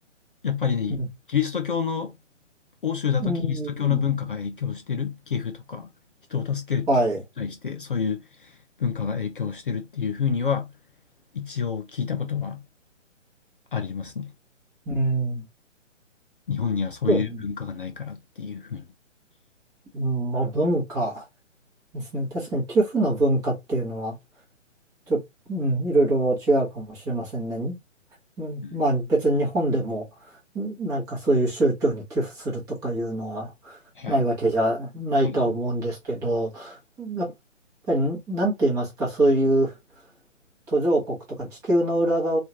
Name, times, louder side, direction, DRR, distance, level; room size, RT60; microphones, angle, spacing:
voice 1, 0.4-1.0 1.3-2.2 2.8-5.9 6.3-6.9 7.4-10.7 11.3-12.6 13.7-14.3 16.5-18.9 28.6-28.8 34.0-34.3 35.2-35.4, left 7 dB, 45° left, 0.5 m, -28 dB
voice 2, 3.2-4.0 6.9-7.2 14.9-15.4 17.1-17.4 19.9-21.2 21.9-24.1 25.1-25.2 25.5-27.8 28.4-30.1 30.5-33.8 34.1-37.3 37.9-39.7 40.7-42.4, right 1 dB, 10° right, 0.9 m, -24 dB
3.6 x 2.4 x 2.9 m
figure-of-eight pair, 135°, 38 cm